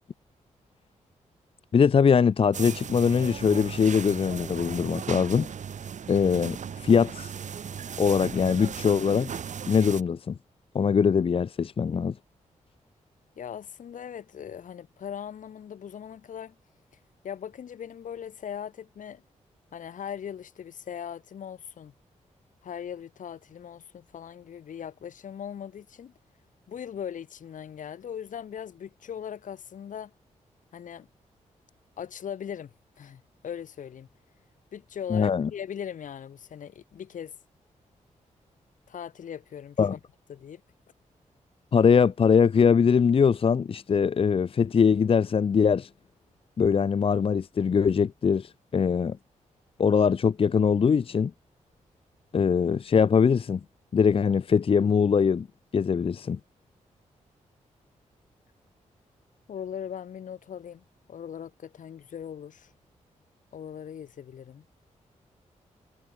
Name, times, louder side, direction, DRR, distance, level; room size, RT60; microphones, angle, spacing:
voice 1, 1.7-5.5 6.1-7.3 8.0-9.4 9.7-10.4 10.7-12.2 35.1-35.5 39.8-39.9 41.7-45.9 46.6-49.2 49.8-51.3 52.3-53.6 53.9-55.5 55.7-56.4, left 6 dB, 45° left, 0.7 m, -22 dB
sound 1, 2.5-10.0, right 7 dB, 70° right, 6.7 m, -37 dB
voice 2, 13.4-16.6 17.2-19.2 19.7-21.9 22.6-26.1 26.7-30.1 30.7-31.1 32.0-34.1 34.7-37.3 38.9-39.8 40.3-40.6 59.5-62.7 63.5-64.6, left 8 dB, 80° left, 7.1 m, -39 dB
cardioid pair, 90°, 13 cm